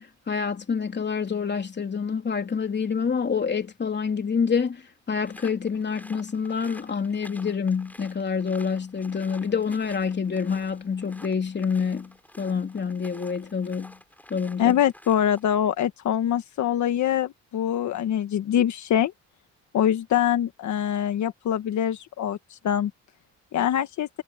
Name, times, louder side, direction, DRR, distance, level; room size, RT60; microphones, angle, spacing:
voice 1, 0.0-4.8 5.1-14.0 14.3-14.8, left 6 dB, 35° left, 3.2 m, -27 dB
sound 1, 5.3-15.6, left 1 dB, 5° left, 6.4 m, -50 dB
voice 2, 14.6-19.1 19.7-22.9 23.5-24.1, left 10 dB, 70° left, 1.5 m, -24 dB
cardioid pair, 90°, 30 cm